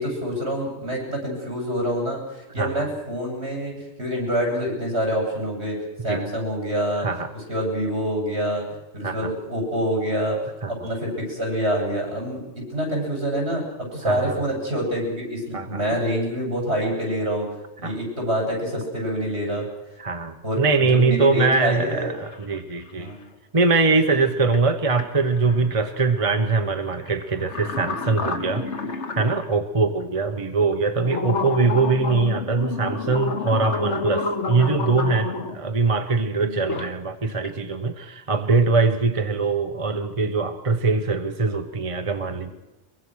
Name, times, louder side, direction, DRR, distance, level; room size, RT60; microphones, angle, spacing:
voice 1, 0.0-7.1 7.3-10.4 10.7-17.5 17.8-19.6 20.4-22.1 22.9-23.2 35.6-35.8 36.3-36.6 40.2-40.3, equal, 70° right, 0 dB, 8.2 m, -26 dB
voice 2, 2.6-2.9 6.1-6.2 7.0-7.3 9.0-9.3 10.6-10.7 14.1-14.4 15.5-15.8 17.8-18.0 20.0-23.1 23.5-28.6 29.1-42.5, right 4 dB, 30° right, 6 dB, 1.1 m, -22 dB
sound 1, 21.8-21.9 22.1-22.9 24.5-24.6 25.0-29.5 30.0-30.1 30.7-35.6 36.4-36.9 37.3-37.6, left 4 dB, 80° left, 1.9 m, -30 dB
23.0 x 23.0 x 6.4 m, 1.0 s
omnidirectional pair, 1.2 m